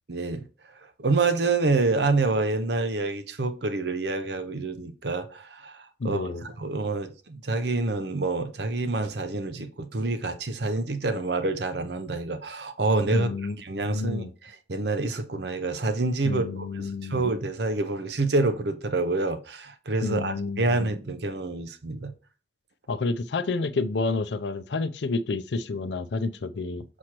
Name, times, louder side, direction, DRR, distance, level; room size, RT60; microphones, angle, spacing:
voice 1, 0.1-0.5 1.0-5.8 6.0-13.3 13.6-14.3 14.7-22.1, right 3 dB, 65° right, 0.7 m, -27 dB
voice 2, 6.0-6.5 13.1-13.6 13.8-14.3 16.2-17.3 20.0-20.9 22.9-26.8, left 3 dB, 70° left, 0.5 m, -29 dB
6.3 x 5.9 x 3.0 m
head